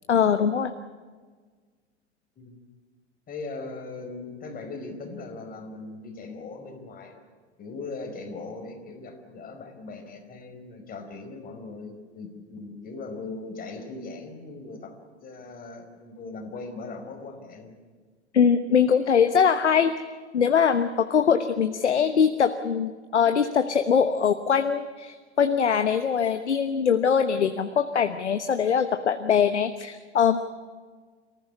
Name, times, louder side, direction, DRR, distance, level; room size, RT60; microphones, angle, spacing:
voice 1, 0.1-0.7 18.3-19.9 20.3-30.4, left 7 dB, 85° left, 9 dB, 1.1 m, -22 dB
voice 2, 3.3-7.2 7.6-15.0 15.2-17.8, left 3 dB, 25° left, 3 dB, 5.0 m, -39 dB
29.0 x 15.0 x 9.9 m, 1.5 s
hypercardioid pair, 95°, 34 cm